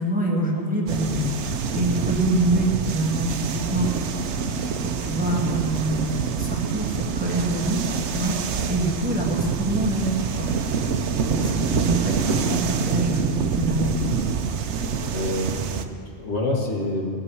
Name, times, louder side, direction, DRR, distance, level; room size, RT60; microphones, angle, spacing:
voice 1, 0.0-1.3 1.7-3.9 4.8-7.8 8.1-8.4 8.7-10.5 11.3-14.0, right 1 dB, 5° right, -3 dB, 1.9 m, -25 dB
sound 1, 0.9-15.9, right 6 dB, 90° right, 1.0 m, -26 dB
voice 2, 15.1-17.1, left 1 dB, 85° left, -1 dB, 2.1 m, -27 dB
18.5 x 6.1 x 7.0 m, 2.3 s
omnidirectional pair, 1.1 m